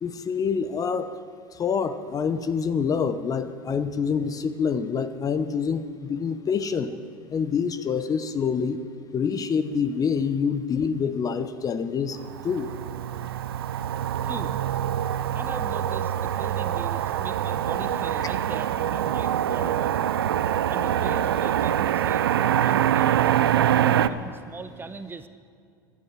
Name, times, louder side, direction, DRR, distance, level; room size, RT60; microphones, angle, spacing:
voice 1, 0.0-1.1 1.5-6.9 7.3-8.8 9.1-12.2 12.4-12.7, left 6 dB, 30° left, 12 dB, 0.9 m, -26 dB
Motor vehicle (road), 12.2-24.1, right 10 dB, 85° right, 0.5 m, -24 dB
voice 2, 14.2-14.6 15.3-19.9 20.7-23.6 24.1-25.3, right 4 dB, 20° right, 10 dB, 0.9 m, -40 dB
15.5 x 11.0 x 7.4 m, 2.3 s
hypercardioid pair, 90°, 12 cm